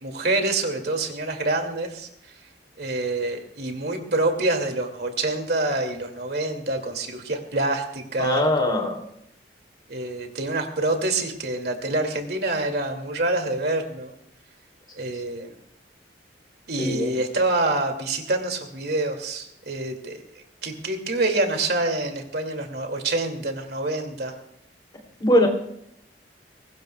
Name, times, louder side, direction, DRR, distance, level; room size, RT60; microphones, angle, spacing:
voice 1, 0.0-2.1 2.8-8.9 9.9-14.1 15.0-15.6 16.7-20.2 20.6-24.3, right 2 dB, 60° right, 4 dB, 2.5 m, -26 dB
voice 2, 8.2-9.0 16.8-17.2 25.2-25.5, left 1 dB, 25° left, 2 dB, 3.0 m, -21 dB
23.0 x 19.0 x 2.3 m, 0.74 s
head